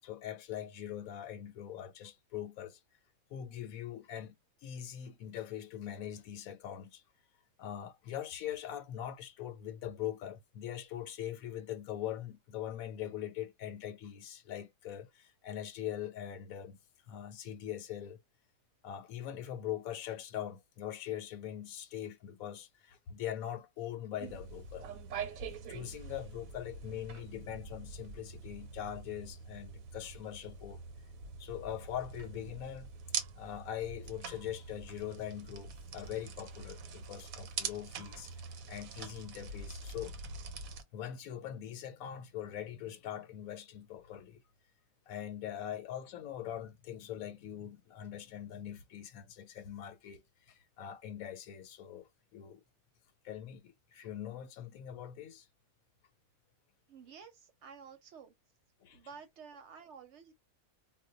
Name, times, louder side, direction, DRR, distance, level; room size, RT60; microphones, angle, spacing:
voice 1, 0.0-2.8 3.3-4.4 4.6-7.0 7.6-16.8 17.1-18.2 18.8-24.9 25.5-30.8 31.4-32.9 33.4-38.3 38.7-40.1 40.9-44.4 45.1-52.6 53.2-55.5 58.8-59.0, left 11 dB, 90° left, 1.1 m, -42 dB
sound 1, 24.2-40.8, right 5 dB, 80° right, 1.0 m, -44 dB
voice 2, 56.9-58.4 58.9-60.3, right 6 dB, 65° right, 0.9 m, -52 dB
2.2 x 2.2 x 3.7 m
omnidirectional pair, 1.4 m